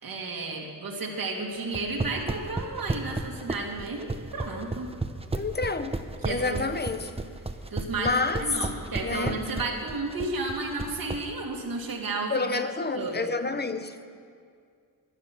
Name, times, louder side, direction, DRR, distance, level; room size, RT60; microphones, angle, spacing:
voice 1, 0.0-4.9 6.2-6.6 7.7-12.6 12.9-13.3, right 3 dB, 90° right, 2.4 m, -32 dB
sound 1, 1.6-11.2, right 3 dB, 15° right, 0.8 m, -32 dB
voice 2, 5.3-6.0 6.2-7.1 8.0-8.5 9.0-9.5 12.3-13.9, left 3 dB, 30° left, 0.9 m, -29 dB
17.0 x 11.0 x 6.1 m
wide cardioid pair, 105°, 34 cm